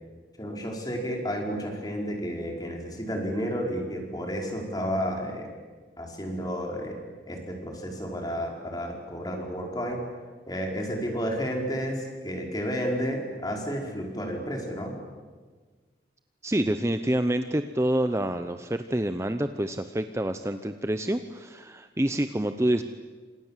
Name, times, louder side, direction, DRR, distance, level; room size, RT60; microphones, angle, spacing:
voice 1, 0.4-5.5 6.0-7.0 7.3-10.0 10.5-14.9, equal, 20° left, 1 dB, 5.1 m, -31 dB
voice 2, 16.4-22.8, right 1 dB, 15° right, 8 dB, 0.8 m, -27 dB
29.5 x 26.5 x 7.5 m, 1.4 s
head